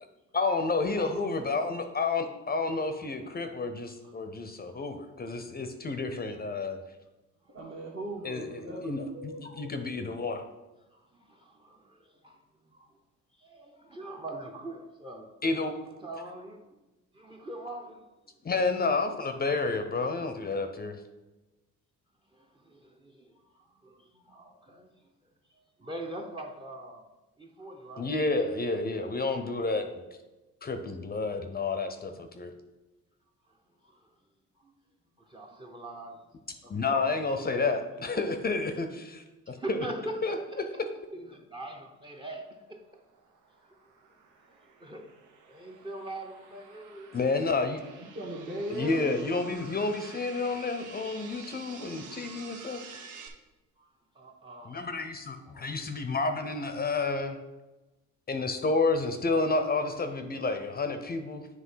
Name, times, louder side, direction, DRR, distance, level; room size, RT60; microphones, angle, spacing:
voice 1, 0.3-6.8 8.2-10.4 15.4-15.9 18.4-21.0 28.0-30.0 30.6-32.5 36.7-39.9 40.2-40.4 47.1-47.8 48.7-52.8 54.7-57.4 58.3-61.5, left 3 dB, 30° left, 0.6 m, -30 dB
voice 2, 0.9-1.3 7.5-9.9 48.0-49.2, right 1 dB, 40° right, 1.2 m, -38 dB
voice 3, 10.9-13.0 13.4-15.3 16.0-16.8 17.1-18.0 22.3-25.1 25.5-27.1 27.4-28.1 33.8-34.1 34.6-34.7 35.2-36.2 36.6-37.0 39.5-40.8 41.1-42.8 44.5-45.1 45.5-47.2 53.8-54.9 55.4-55.9, right 1 dB, 15° right, 0.7 m, -43 dB
sound 1, 42.5-53.3, right 5 dB, 80° right, 0.9 m, -50 dB
7.5 x 3.2 x 5.5 m
cardioid pair, 90°, 30 cm